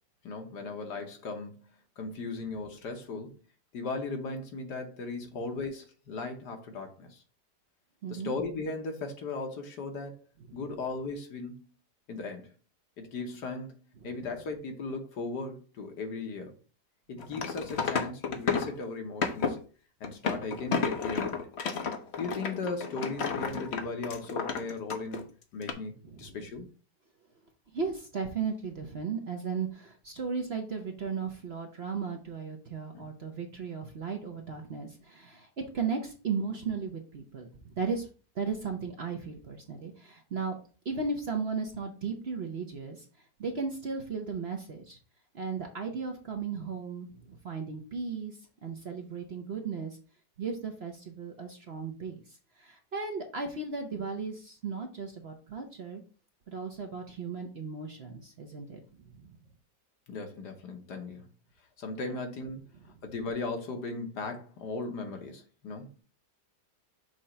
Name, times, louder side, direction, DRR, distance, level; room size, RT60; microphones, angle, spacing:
voice 1, 0.2-3.4 3.7-7.2 8.1-10.2 10.5-11.6 12.1-12.5 13.0-16.5 17.1-19.6 20.0-21.4 22.2-25.2 25.5-26.7 32.9-33.1 60.1-61.3 61.8-62.6 63.0-66.0, left 3 dB, 75° left, 1.7 m, -37 dB
voice 2, 8.0-8.3 10.5-10.6 14.0-14.3 26.0-26.4 27.7-35.5 35.7-38.1 38.3-40.5 40.8-43.1 43.4-45.0 45.3-50.0 50.4-52.2 52.6-56.0 56.5-58.8 59.0-59.3, right 5 dB, 50° right, 0.8 m, -36 dB
sound 1, 17.2-18.8 19.2-19.6 20.0-25.2 25.6-25.7, left 5 dB, 50° left, 0.8 m, -31 dB
6.3 x 3.0 x 5.4 m
omnidirectional pair, 1.8 m